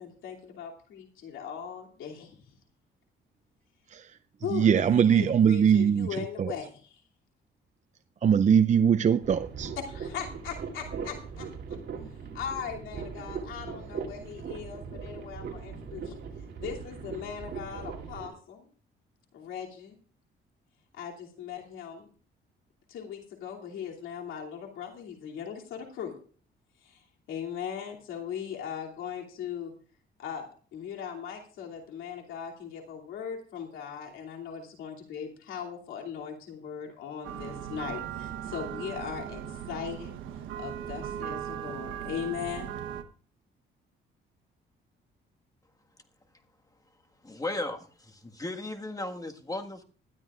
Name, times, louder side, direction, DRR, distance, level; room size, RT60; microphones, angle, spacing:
voice 1, 0.0-2.4 4.4-7.0 9.9-11.5 12.3-16.2 16.6-18.7 19.3-20.0 20.9-22.1 22.9-26.1 26.8-27.0 27.3-29.7 30.2-40.1 40.6-42.8, left 8 dB, 85° left, 2.8 m, -39 dB
voice 2, 4.5-6.1 8.2-9.7, right 7 dB, 40° right, 0.5 m, -21 dB
sound 1, 9.2-18.3, right 5 dB, 60° right, 3.0 m, -39 dB
sound 2, 37.2-43.0, right 10 dB, 90° right, 1.1 m, -38 dB
voice 3, 47.2-49.8, left 2 dB, 20° left, 1.7 m, -36 dB
19.5 x 12.5 x 2.5 m
cardioid pair, 90°, 20 cm